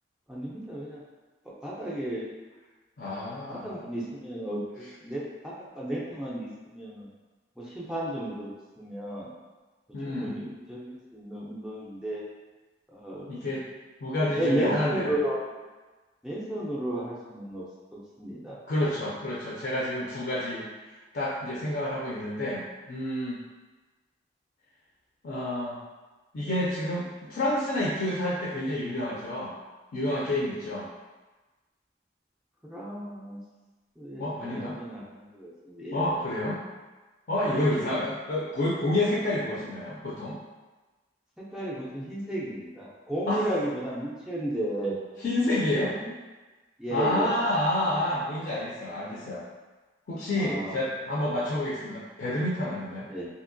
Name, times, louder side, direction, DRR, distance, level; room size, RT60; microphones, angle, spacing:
voice 1, 0.3-1.0 1.6-2.3 3.5-7.1 7.6-9.3 10.1-12.2 12.9-13.3 14.2-15.4 16.2-17.6 17.9-18.6 32.6-33.4 34.0-36.2 37.5-37.8 39.5-39.6 41.4-45.0 45.8-46.1 46.8-47.3 50.4-50.8 53.1-53.3, right 1 dB, 5° right, -7 dB, 0.4 m, -33 dB
voice 2, 3.0-3.7 9.9-10.3 13.3-13.7 14.0-15.1 18.7-20.7 21.1-23.4 25.2-25.8 26.3-29.5 29.9-30.9 34.2-34.8 35.9-36.6 37.3-40.4 43.3-43.4 45.2-45.9 46.9-49.4 50.1-53.1, left 1 dB, 55° left, -6 dB, 0.4 m, -29 dB
2.8 x 2.7 x 2.6 m, 1.2 s
head